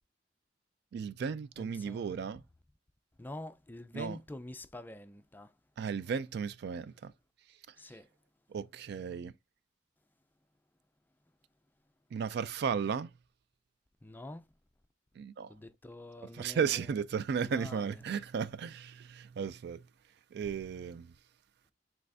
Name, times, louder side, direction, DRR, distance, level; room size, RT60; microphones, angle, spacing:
voice 1, 0.9-2.4 3.9-4.2 5.8-7.1 8.5-9.3 12.1-13.1 15.2-15.5 16.4-19.8 20.3-21.1, right 6 dB, 65° right, 0.3 m, -35 dB
voice 2, 1.6-2.4 3.2-5.6 7.8-8.1 14.0-14.5 15.5-18.0, left 1 dB, 10° left, 0.4 m, -47 dB
5.4 x 3.4 x 2.6 m
head